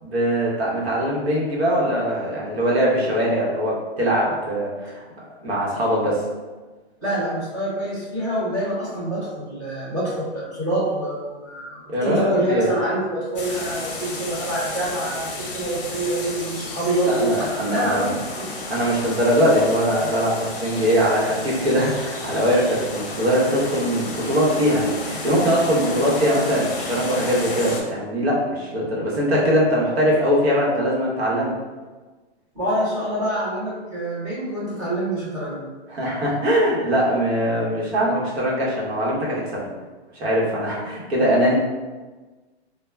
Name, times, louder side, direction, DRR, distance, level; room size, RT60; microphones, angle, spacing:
voice 1, 0.0-5.0 5.4-6.2 11.9-12.7 17.1-18.1 18.7-31.6 35.9-39.7 40.1-41.5, equal, 65° right, -4 dB, 1.0 m, -21 dB
voice 2, 7.0-15.3 15.5-18.1 18.4-18.5 32.5-35.6, right 1 dB, 15° right, -11 dB, 0.5 m, -26 dB
sound 1, 13.4-27.8, left 2 dB, 55° left, 0.6 m, -32 dB
2.1 x 2.1 x 3.2 m, 1.3 s
hypercardioid pair, 180°, 33 cm